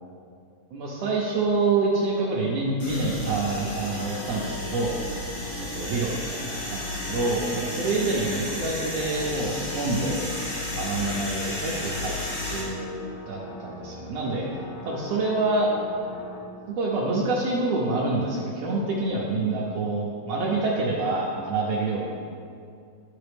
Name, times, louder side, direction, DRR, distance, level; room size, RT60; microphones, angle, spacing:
voice 1, 0.7-4.9 5.7-6.1 6.7-10.2 10.7-12.1 12.4-14.5 14.8-15.7 16.8-22.2, right 3 dB, 75° right, -3 dB, 1.5 m, -27 dB
sound 1, 2.8-12.6, left 1 dB, 55° left, 2.2 m, -33 dB
sound 2, 3.0-16.4, left 2 dB, 75° left, 2.3 m, -41 dB
11.5 x 3.9 x 3.4 m, 2.3 s
omnidirectional pair, 3.6 m